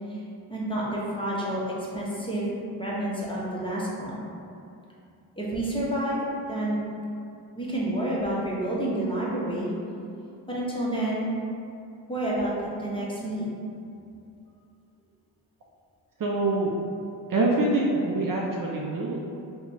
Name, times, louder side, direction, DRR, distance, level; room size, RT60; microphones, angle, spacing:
voice 1, 0.5-1.6 1.9-2.5 2.8-4.3 5.4-6.2 6.5-6.8 7.5-9.7 10.5-11.2 12.1-12.5 12.8-13.5, right 1 dB, 10° left, -6 dB, 0.9 m, -29 dB
voice 2, 16.2-16.7 17.3-19.2, right 2 dB, 45° right, -2 dB, 0.6 m, -25 dB
2.8 x 2.3 x 4.1 m, 2.5 s
supercardioid pair, 45°, 47 cm